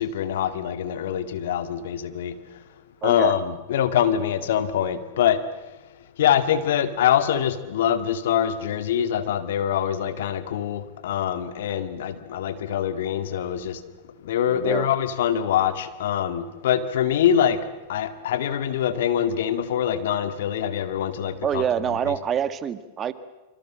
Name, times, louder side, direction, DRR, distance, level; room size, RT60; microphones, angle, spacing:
voice 1, 0.0-2.6 3.0-5.4 6.2-13.8 14.2-21.6 22.1-22.2, left 9 dB, 65° left, 11 dB, 2.2 m, -24 dB
voice 2, 3.0-3.3 14.5-14.9 21.4-23.1, right 9 dB, 30° right, 13 dB, 1.7 m, -26 dB
26.5 x 25.5 x 7.6 m, 1.1 s
hypercardioid pair, 105°, 0 cm